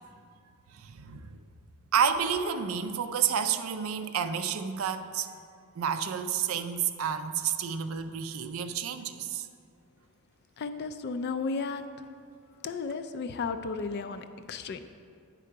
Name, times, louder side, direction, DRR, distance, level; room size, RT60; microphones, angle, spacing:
voice 1, 0.7-1.4 1.9-5.3 5.8-9.5, right 7 dB, 65° right, 9 dB, 0.4 m, -30 dB
voice 2, 10.6-11.8 12.6-14.8, left 4 dB, 50° left, 10 dB, 0.3 m, -34 dB
10.0 x 3.8 x 4.6 m, 2.2 s
head